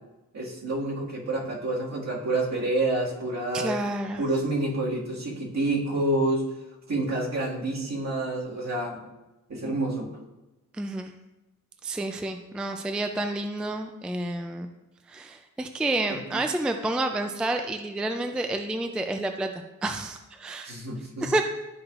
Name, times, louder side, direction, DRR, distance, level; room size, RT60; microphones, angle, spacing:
voice 1, 0.3-3.8 4.2-6.4 6.9-9.0 9.5-10.1 16.1-16.4 20.6-21.3, right 2 dB, 60° right, -4 dB, 1.9 m, -28 dB
voice 2, 3.5-4.2 10.8-11.1 11.8-14.7 15.1-20.7 21.2-21.4, right 2 dB, 5° right, 5 dB, 0.3 m, -29 dB
12.5 x 4.7 x 2.4 m, 1.0 s
wide cardioid pair, 155°, 31 cm